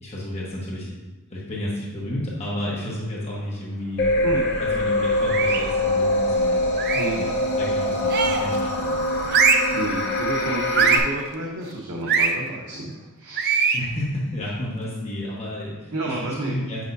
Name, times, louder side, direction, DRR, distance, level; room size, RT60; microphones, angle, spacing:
voice 1, 0.0-0.9 1.3-4.2 4.6-7.3 7.6-9.3 13.7-16.9, left 1 dB, 30° left, -5 dB, 1.1 m, -31 dB
sound 1, 4.0-11.0, left 1 dB, 50° left, 0.8 m, -23 dB
sound 2, 5.3-5.7 6.8-7.2 8.1-8.6 9.3-9.8 10.7-11.1 12.1-12.3 13.4-13.9, right 5 dB, 45° right, 0.4 m, -21 dB
voice 2, 9.7-13.6 15.9-16.6, right 2 dB, 80° right, -2 dB, 0.8 m, -31 dB
7.7 x 5.3 x 2.6 m, 1.2 s
head